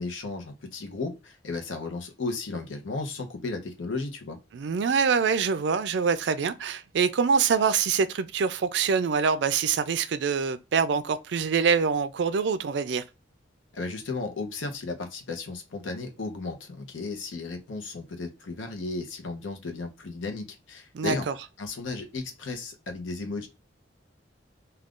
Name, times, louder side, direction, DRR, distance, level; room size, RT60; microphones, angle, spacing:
voice 1, 0.0-4.4 13.7-21.2 21.6-23.5, left 3 dB, 80° left, 0.7 m, -34 dB
voice 2, 4.5-13.0 20.9-21.3, right 6 dB, 65° right, 0.3 m, -25 dB
2.4 x 2.3 x 3.5 m
head